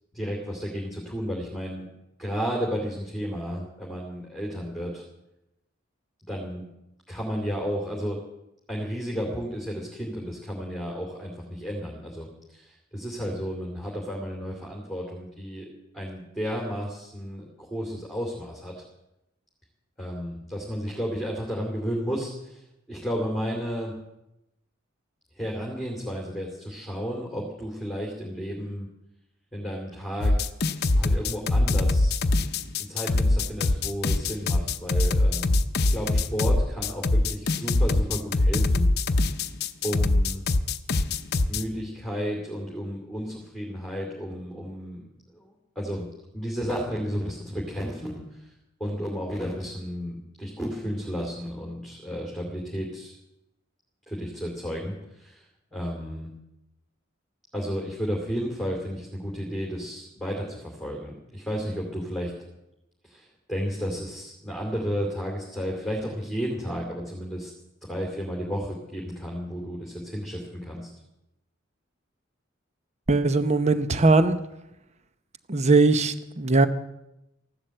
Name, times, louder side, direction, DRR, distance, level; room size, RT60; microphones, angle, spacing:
voice 1, 0.1-1.9 2.2-5.0 6.3-6.6 7.1-8.2 8.7-15.7 15.9-18.8 20.0-22.6 22.9-23.9 25.4-28.9 29.5-30.5 30.9-32.1 32.9-38.8 39.8-40.4 41.5-45.1 45.3-46.0 46.3-48.5 48.8-53.1 54.1-55.4 55.7-56.3 57.5-62.3 63.0-67.5 67.9-70.9, equal, ahead, -3 dB, 2.8 m, -32 dB
sound 1, 30.2-41.6, left 2 dB, 55° left, 0.7 m, -23 dB
voice 2, 73.1-74.4 75.5-76.7, right 3 dB, 35° right, 11 dB, 0.8 m, -20 dB
15.0 x 12.0 x 7.8 m, 0.89 s
head